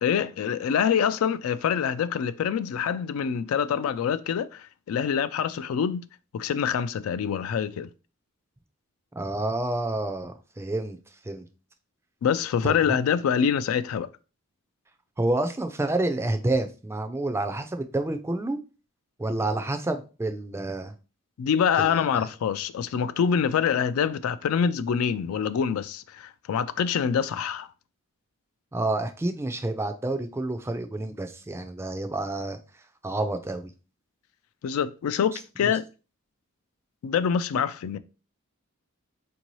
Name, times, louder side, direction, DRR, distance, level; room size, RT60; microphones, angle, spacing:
voice 1, 0.0-6.0 6.3-7.9 12.2-14.1 21.4-27.7 34.6-35.8 37.0-38.0, left 7 dB, 80° left, 0.3 m, -25 dB
voice 2, 9.2-11.0 11.2-11.4 12.9-13.0 15.2-18.6 19.2-20.9 21.8-22.3 28.7-32.6 33.0-33.7 35.3-35.7, right 2 dB, 10° right, 0.3 m, -29 dB
4.5 x 2.7 x 3.0 m
head